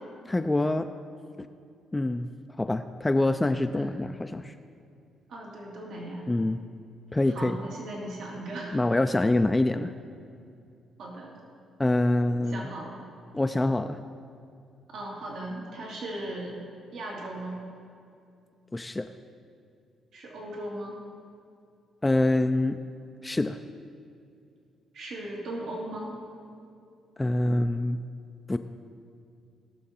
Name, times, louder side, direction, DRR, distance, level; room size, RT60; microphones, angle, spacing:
voice 1, 0.3-0.9 1.4-1.5 1.9-2.3 2.6-4.5 6.3-6.6 7.1-7.6 8.7-9.9 11.8-12.7 13.3-14.0 18.7-19.1 22.0-22.8 23.2-23.6 27.2-28.0 28.5-28.6, left 2 dB, 15° left, 7 dB, 0.4 m, -25 dB
voice 2, 5.3-6.2 7.3-8.8 11.0-11.4 12.5-13.0 14.9-16.5 16.9-17.6 20.1-21.0 24.9-26.2, right 1 dB, 70° right, -3 dB, 2.3 m, -37 dB
18.5 x 6.4 x 4.3 m, 2.5 s
cardioid pair, 90°, 0 cm